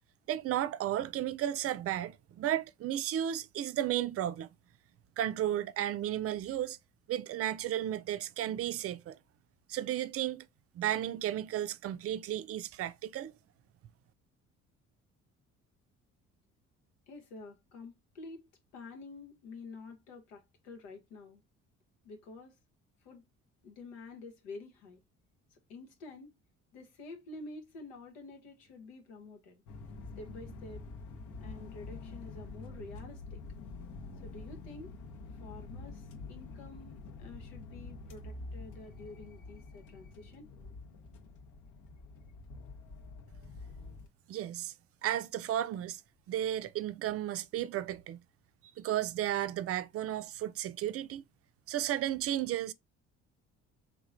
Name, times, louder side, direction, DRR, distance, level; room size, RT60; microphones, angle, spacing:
voice 1, 0.3-4.5 5.2-6.8 7.1-9.2 9.7-10.5 10.7-13.3 44.3-44.7 45.0-46.0 46.3-48.2 48.8-51.2 51.7-52.7, right 12 dB, 45° right, 0.4 m, -33 dB
voice 2, 17.1-21.4 22.0-22.6 23.0-23.2 23.6-25.0 25.5-26.4 26.7-29.6 30.2-30.9 31.4-33.4 34.2-34.9 35.4-40.5, left 3 dB, 90° left, 0.9 m, -49 dB
sound 1, 29.7-44.1, left 3 dB, 60° left, 0.8 m, -47 dB
3.5 x 3.0 x 2.4 m
supercardioid pair, 60°, 34 cm